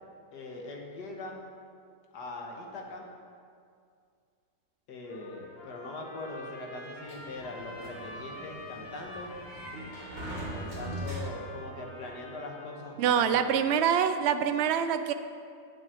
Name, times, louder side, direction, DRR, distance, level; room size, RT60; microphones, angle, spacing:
voice 1, 0.3-1.4 2.1-3.1 4.9-9.3 10.3-13.5, left 2 dB, 75° left, 0 dB, 2.0 m, -41 dB
Trumpet, 5.0-12.9, left 2 dB, 35° left, 1.9 m, -47 dB
Sliding door, 7.1-11.7, right 1 dB, 25° right, 2.0 m, -41 dB
voice 2, 13.0-15.1, right 8 dB, 75° right, 9 dB, 0.6 m, -25 dB
8.1 x 6.7 x 8.4 m, 2.3 s
omnidirectional pair, 1.8 m